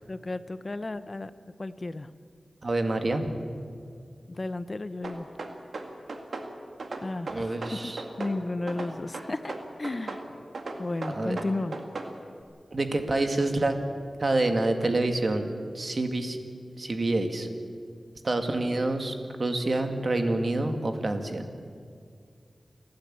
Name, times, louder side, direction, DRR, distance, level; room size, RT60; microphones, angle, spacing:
voice 1, 0.1-1.3 1.6-2.1 4.3-5.3 7.0-7.6 8.2-9.5 9.8-10.2 10.8-11.8, left 2 dB, 40° left, 13 dB, 0.8 m, -33 dB
voice 2, 2.6-3.4 7.3-8.0 11.1-11.4 12.7-13.8 14.2-15.4 15.7-16.4 16.8-17.5 18.2-19.1 19.4-21.4, right 2 dB, 50° right, 6 dB, 2.1 m, -27 dB
sound 1, 5.0-6.5 6.8-8.4 8.7-10.2 10.5-12.1, right 3 dB, 80° right, 2.1 m, -36 dB
29.5 x 11.5 x 8.7 m, 2.2 s
wide cardioid pair, 75°, 0 cm